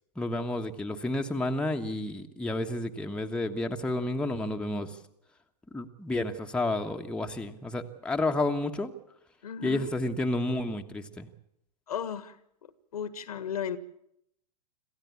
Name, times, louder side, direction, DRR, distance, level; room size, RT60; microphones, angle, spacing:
voice 1, 0.2-5.0 5.7-8.9 9.6-11.3, left 2 dB, 5° left, 3 dB, 1.3 m, -31 dB
voice 2, 9.4-9.9 11.9-12.4 12.6-13.8, left 8 dB, 65° left, 15 dB, 1.5 m, -35 dB
27.0 x 14.5 x 8.4 m, 0.77 s
figure-of-eight pair, 100°, 21 cm